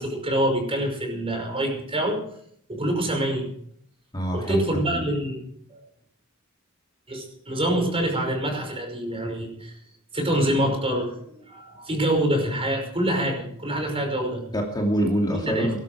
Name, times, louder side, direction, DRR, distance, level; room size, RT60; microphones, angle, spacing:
voice 1, 0.0-2.2 2.7-3.5 4.3-5.8 7.1-9.8 10.1-14.4 15.3-15.7, right 1 dB, 25° right, 2 dB, 5.6 m, -26 dB
voice 2, 4.1-5.1 14.5-15.8, equal, 20° left, 0 dB, 2.6 m, -25 dB
19.5 x 12.0 x 4.9 m, 0.67 s
head